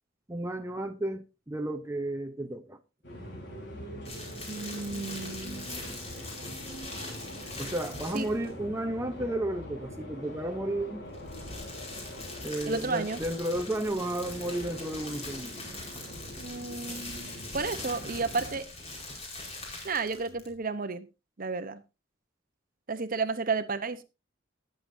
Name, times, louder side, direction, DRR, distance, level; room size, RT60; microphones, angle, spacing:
voice 1, 0.3-2.8 7.6-11.0 12.4-15.6, right 1 dB, 15° right, 0.8 m, -33 dB
sound 1, 3.0-18.6, equal, 60° left, 5.0 m, -43 dB
sound 2, 4.0-8.5 11.0-20.6, left 2 dB, 35° left, 4.9 m, -42 dB
voice 2, 4.5-5.7 8.1-8.3 12.7-13.2 16.4-18.7 19.8-21.1 21.4-21.8 22.9-24.0, right 4 dB, 45° right, 0.9 m, -32 dB
19.5 x 7.8 x 2.7 m
head